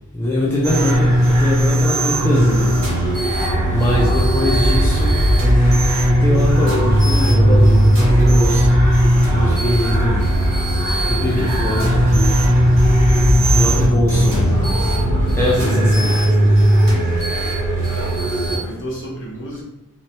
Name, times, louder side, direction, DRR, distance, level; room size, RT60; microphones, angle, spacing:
voice 1, 0.1-2.9 3.2-5.2 6.2-8.7 9.3-10.4 10.8-12.4 13.5-14.5 15.3-16.7, left 1 dB, 10° left, -4 dB, 0.3 m, -22 dB
sound 1, 0.6-18.6, right 1 dB, 45° right, 1.1 m, -18 dB
sound 2, 3.2-15.5, equal, 85° left, 0.5 m, -20 dB
voice 2, 13.7-15.0 16.0-16.1 17.9-19.6, right 1 dB, 55° left, -2 dB, 0.7 m, -34 dB
2.8 x 2.0 x 3.2 m, 0.96 s
head